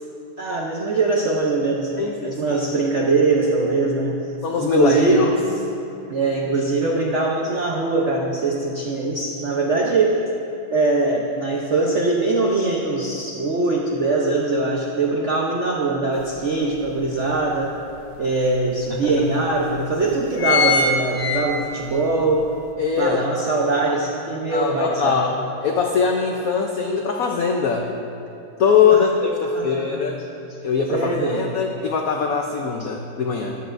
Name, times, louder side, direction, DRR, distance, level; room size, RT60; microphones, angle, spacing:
voice 1, 0.4-4.2 4.6-5.3 6.1-10.2 10.7-17.7 18.2-22.5 23.0-25.2 28.9-29.1 29.5-30.1 30.9-31.5, right 3 dB, 70° right, -2 dB, 0.6 m, -22 dB
voice 2, 2.0-2.6 4.4-5.3 18.9-19.1 22.8-23.2 24.5-27.9 28.6-30.2 30.6-33.5, left 6 dB, 80° left, 2 dB, 0.7 m, -21 dB
sound 1, 16.2-16.3 16.7-17.9 18.6-18.7 18.9-19.0 19.7-19.9 20.1-22.0 22.4-22.5, left 4 dB, 60° left, 1.5 m, -22 dB
13.5 x 11.0 x 2.6 m, 2.9 s
omnidirectional pair, 2.3 m